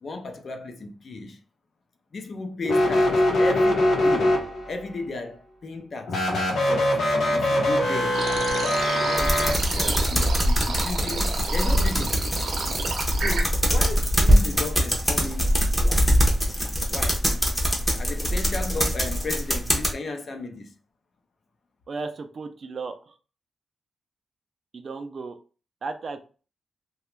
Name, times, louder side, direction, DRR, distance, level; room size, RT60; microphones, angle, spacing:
voice 1, 0.0-1.4 2.1-4.4 4.7-6.2 6.6-7.0 7.3-8.2 8.9-9.3 9.7-12.2 13.2-17.2 18.0-20.7, left 3 dB, 45° left, 0.5 m, -35 dB
sound 1, 2.6-4.8 6.1-9.5, left 1 dB, 85° left, 0.8 m, -22 dB
sound 2, 8.1-13.4, right 4 dB, 85° right, 0.7 m, -31 dB
sound 3, 9.2-19.9, equal, 5° left, 0.6 m, -23 dB
voice 2, 21.9-23.1 24.7-25.4 25.8-26.3, right 4 dB, 45° right, 0.4 m, -35 dB
2.8 x 2.3 x 3.1 m
wide cardioid pair, 150°, 0 cm